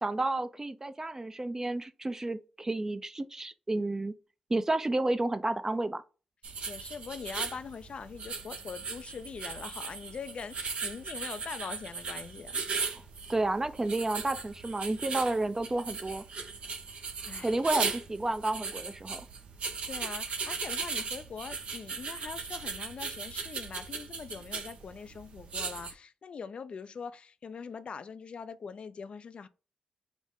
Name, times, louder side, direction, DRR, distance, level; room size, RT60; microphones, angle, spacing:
voice 1, 0.0-4.1 4.5-6.0 13.3-16.2 17.4-19.2, right 2 dB, 25° right, 0.5 m, -31 dB
sound 1, 6.4-25.9, right 5 dB, 70° right, 0.8 m, -38 dB
voice 2, 6.7-12.6 16.9-17.6 19.9-29.5, left 6 dB, 60° left, 0.4 m, -43 dB
4.9 x 2.1 x 3.6 m
supercardioid pair, 55°, 2 cm